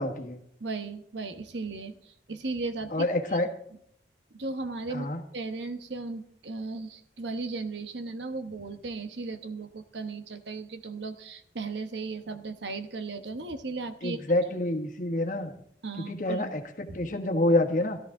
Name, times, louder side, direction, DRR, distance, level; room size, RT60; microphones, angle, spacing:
voice 1, 0.0-0.4 2.9-3.5 4.9-5.2 14.0-15.5 16.0-18.0, left 1 dB, 45° left, 4 dB, 1.4 m, -27 dB
voice 2, 0.6-3.4 4.3-14.3 15.8-16.5 16.9-17.0, right 3 dB, 80° right, 8 dB, 1.1 m, -36 dB
13.5 x 13.0 x 3.8 m, 0.66 s
head